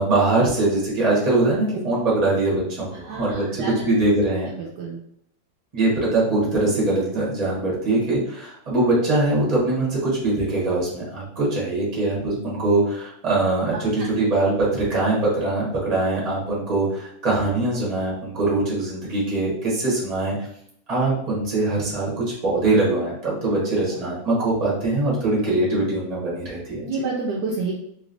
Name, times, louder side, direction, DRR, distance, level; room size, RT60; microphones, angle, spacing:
voice 1, 0.0-4.5 5.7-20.5 20.9-26.8, right 2 dB, 25° right, -6 dB, 1.2 m, -22 dB
voice 2, 3.1-3.9 4.6-5.0 23.9-24.0 26.8-27.7, right 3 dB, 70° right, -2 dB, 1.1 m, -29 dB
3.3 x 3.1 x 2.6 m, 0.73 s
omnidirectional pair, 2.1 m